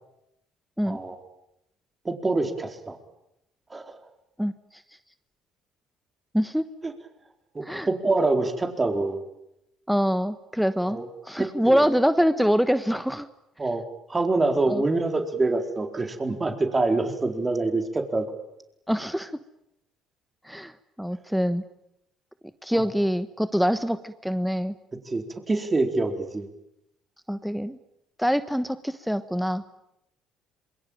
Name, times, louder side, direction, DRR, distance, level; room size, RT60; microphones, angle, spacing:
voice 1, 0.8-1.2 2.0-3.0 3.7-3.9 6.8-6.9 7.5-9.2 10.9-11.1 11.4-11.8 13.6-13.8 14.1-18.3 22.7-22.8 25.1-26.5, right 3 dB, 25° right, 5 dB, 4.4 m, -25 dB
voice 2, 9.9-11.0 11.2-13.3 14.7-14.8 18.9-19.3 20.4-20.7 21.0-21.6 22.6-24.7 27.3-27.8 28.2-29.6, equal, ahead, 11 dB, 1.2 m, -24 dB
27.0 x 22.5 x 9.2 m, 0.84 s
supercardioid pair, 75°, 0 cm